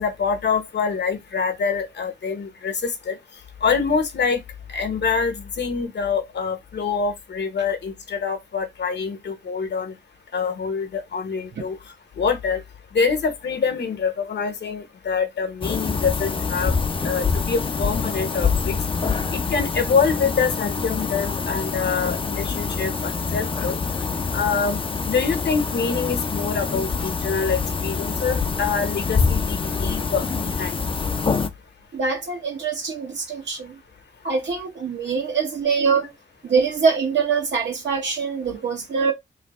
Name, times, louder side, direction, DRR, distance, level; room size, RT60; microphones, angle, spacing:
voice 1, 0.0-3.2 3.6-4.4 4.7-9.9 10.3-11.8 12.2-12.6 12.9-16.7 17.0-18.8 19.3-23.8 24.3-24.8 25.1-30.8, left 5 dB, 65° left, 0.9 m, -25 dB
sound 1, 15.6-31.5, left 5 dB, 30° left, 0.4 m, -25 dB
voice 2, 31.9-33.7 34.2-36.1 36.4-39.1, right 5 dB, 70° right, 1.0 m, -23 dB
3.1 x 2.5 x 4.1 m
wide cardioid pair, 160°, 19 cm